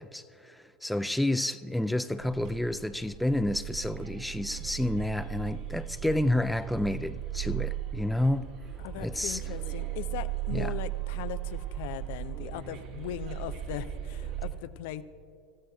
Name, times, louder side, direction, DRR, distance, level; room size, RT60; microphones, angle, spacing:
voice 1, 0.0-8.5 9.0-9.4 10.5-10.7, left 1 dB, 5° left, 0.4 m, -30 dB
sound 1, 2.2-14.5, right 12 dB, 50° right, 2.0 m, -37 dB
voice 2, 8.8-15.0, left 13 dB, 55° left, 0.6 m, -39 dB
26.0 x 14.5 x 2.3 m
figure-of-eight pair, 85°, 0 cm